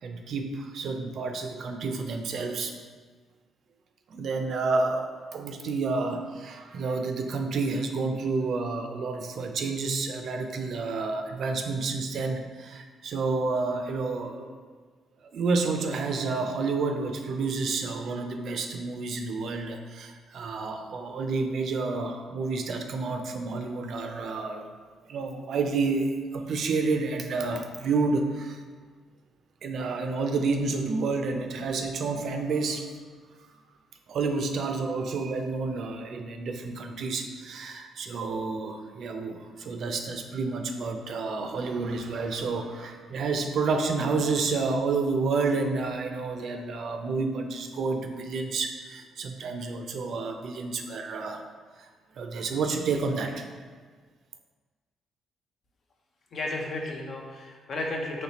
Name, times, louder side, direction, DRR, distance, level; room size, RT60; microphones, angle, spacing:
voice 1, 0.0-2.7 4.1-14.5 15.3-24.7 25.1-28.6 29.6-32.9 34.1-51.4 51.8-51.9 52.2-53.4, right 4 dB, 65° right, 5 dB, 0.4 m, -30 dB
voice 2, 56.3-58.2, left 2 dB, 55° left, 1 dB, 0.6 m, -33 dB
4.1 x 3.1 x 2.9 m, 1.5 s
cardioid pair, 90°, 0 cm